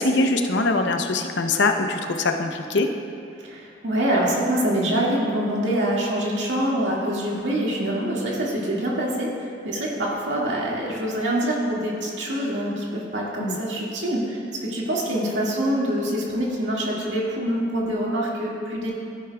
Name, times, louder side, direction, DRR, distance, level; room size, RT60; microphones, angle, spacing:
voice 1, 0.0-2.9 13.4-13.6, left 2 dB, 75° left, 5 dB, 0.7 m, -22 dB
voice 2, 3.4-18.9, right 1 dB, 75° right, -4 dB, 2.0 m, -25 dB
15.0 x 10.5 x 2.3 m, 2.5 s
head